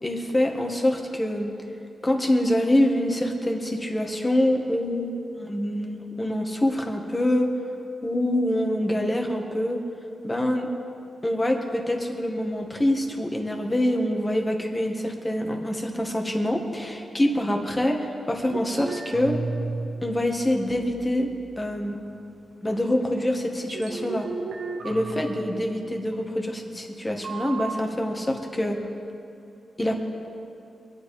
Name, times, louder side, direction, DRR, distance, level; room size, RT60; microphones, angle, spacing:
voice 1, 0.0-1.5 2.0-7.5 8.0-9.8 10.2-10.7 11.2-18.0 18.3-19.4 20.0-21.3 21.6-22.0 22.6-24.3 24.8-28.8 29.8-29.9, left 1 dB, 20° left, 2 dB, 1.9 m, -25 dB
sound 1, 18.4-20.2 20.5-21.5 22.0-22.1 22.6-22.8 23.6-26.1 27.2-27.7, right 4 dB, 85° right, 1.4 m, -34 dB
24.0 x 9.8 x 5.1 m, 2.6 s
cardioid pair, 100°, 0 cm